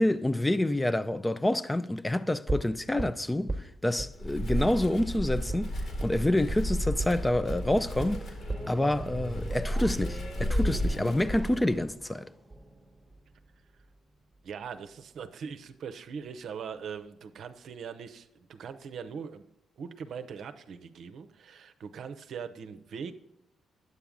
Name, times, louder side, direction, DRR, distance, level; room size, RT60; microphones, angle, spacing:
voice 1, 0.0-5.7 6.0-8.2 8.7-12.3, left 1 dB, 15° left, 0.4 m, -27 dB
sound 1, 2.5-4.1 4.5-4.7 5.0-5.1 5.5-5.6 6.0-6.1 6.5-6.7 7.0-7.1 7.5-13.5 13.8-13.9, right 2 dB, 15° right, 1.2 m, -38 dB
Wind, 4.1-11.9, equal, 60° left, 2.0 m, -33 dB
voice 2, 14.4-19.4 19.8-23.1, right 6 dB, 65° right, 0.6 m, -41 dB
9.6 x 6.9 x 3.6 m
hypercardioid pair, 50°, 0 cm